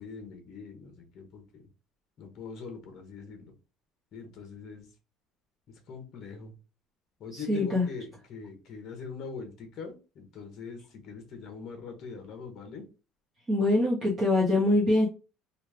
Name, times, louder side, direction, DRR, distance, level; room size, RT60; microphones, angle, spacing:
voice 1, 0.0-1.6 2.2-3.5 4.1-4.9 5.7-6.5 7.2-12.8, left 5 dB, 40° left, 1.0 m, -42 dB
voice 2, 7.3-7.8 13.5-15.1, left 2 dB, 20° right, 0.9 m, -24 dB
3.2 x 2.3 x 3.3 m
cardioid pair, 165°, 0 cm